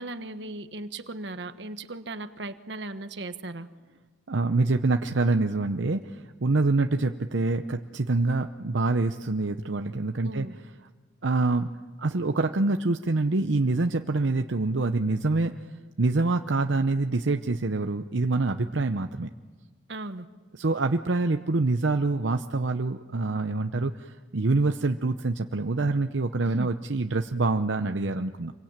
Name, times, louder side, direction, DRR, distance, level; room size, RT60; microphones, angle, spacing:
voice 1, 0.0-3.7 10.2-10.6 19.9-20.3 26.4-26.7, right 2 dB, 70° right, 10 dB, 1.3 m, -37 dB
voice 2, 4.3-10.5 11.2-11.7 12.0-15.5 16.0-19.3 20.6-28.5, right 3 dB, 85° right, 7 dB, 0.8 m, -26 dB
27.5 x 23.0 x 8.9 m, 1.4 s
head